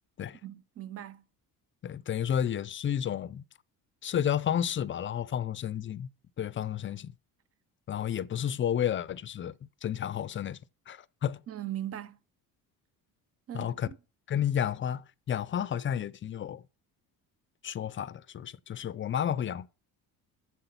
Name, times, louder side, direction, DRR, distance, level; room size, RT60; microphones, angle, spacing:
voice 1, 0.4-1.2 11.5-12.2 13.5-14.0, right 12 dB, 40° right, 0.7 m, -39 dB
voice 2, 1.8-3.4 4.0-6.1 6.4-7.1 7.9-10.6 10.9-11.4 13.5-13.9 14.3-16.6 17.6-19.7, left 9 dB, 35° left, 0.5 m, -31 dB
7.9 x 7.5 x 5.8 m
cardioid pair, 135°, 36 cm